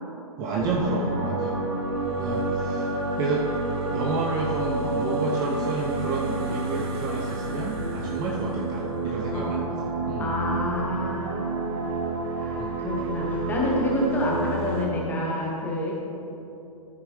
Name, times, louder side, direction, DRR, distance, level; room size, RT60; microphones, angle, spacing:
voice 1, 0.4-1.6 2.2-3.5 3.9-10.3 12.6-13.1, right 3 dB, 20° right, -1 dB, 0.6 m, -30 dB
sound 1, 0.6-14.8, right 2 dB, 40° right, 1.1 m, -29 dB
voice 2, 9.3-9.7 10.2-11.6 11.9-12.0 12.3-16.0, left 1 dB, 10° left, -3 dB, 1.3 m, -28 dB
13.5 x 6.0 x 3.2 m, 3.0 s
figure-of-eight pair, 125°, 19 cm